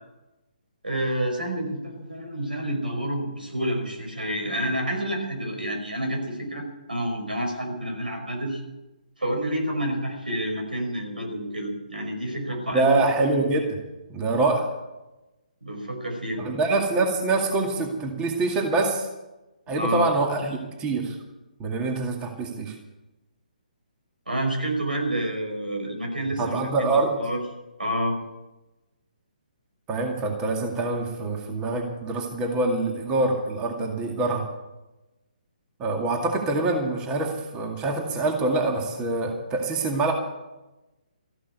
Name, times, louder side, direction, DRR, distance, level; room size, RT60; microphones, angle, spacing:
voice 1, 0.8-8.6 9.2-13.0 15.6-16.5 19.7-20.1 24.3-27.4 27.8-28.2, right 1 dB, 90° right, 3 dB, 5.3 m, -29 dB
voice 2, 12.7-13.8 14.1-14.7 16.4-19.1 19.7-21.2 21.6-22.7 26.4-27.2 29.9-34.4 35.8-40.1, right 3 dB, 20° right, 2 dB, 2.2 m, -25 dB
14.5 x 11.5 x 8.2 m, 1.0 s
figure-of-eight pair, 140°, 5 cm